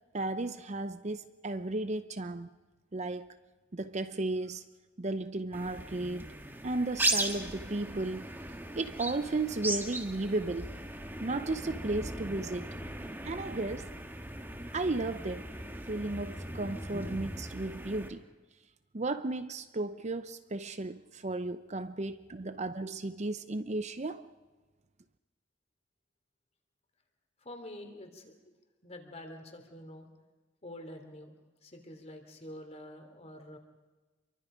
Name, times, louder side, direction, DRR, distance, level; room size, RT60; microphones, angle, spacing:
voice 1, 0.1-2.5 2.9-3.4 3.7-4.6 5.0-6.3 6.6-8.3 8.8-10.7 11.2-12.7 13.2-13.9 14.7-15.5 15.9-18.2 18.9-24.3, right 2 dB, 35° right, 0.7 m, -34 dB
sound 1, 5.5-18.1, right 2 dB, 10° right, 1.8 m, -38 dB
voice 2, 27.4-28.3 28.8-30.1 30.6-31.3 31.6-33.6, left 1 dB, 35° left, 3.3 m, -47 dB
28.0 x 23.5 x 5.2 m
head